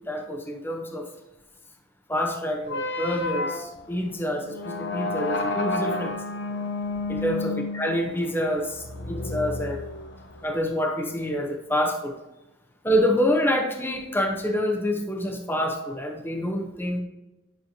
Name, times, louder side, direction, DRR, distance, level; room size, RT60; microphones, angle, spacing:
voice 1, 0.1-1.1 2.1-6.1 7.1-9.9 10.4-12.1 12.8-17.0, equal, 10° left, 2 dB, 0.8 m, -27 dB
sound 1, 2.6-10.4, left 2 dB, 60° left, 0.9 m, -31 dB
10.5 x 6.9 x 2.8 m, 1.0 s
head